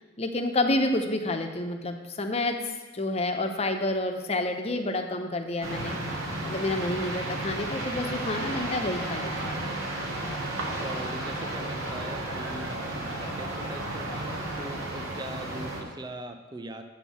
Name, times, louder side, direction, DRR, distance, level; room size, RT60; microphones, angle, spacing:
voice 1, 0.0-2.6 2.9-5.9 6.4-9.6, left 2 dB, 30° left, 5 dB, 0.6 m, -29 dB
sound 1, 5.6-15.8, right 1 dB, 80° right, 1.5 m, -33 dB
voice 2, 10.8-16.8, right 1 dB, 20° right, 7 dB, 0.4 m, -41 dB
8.1 x 4.5 x 6.9 m, 1.3 s
head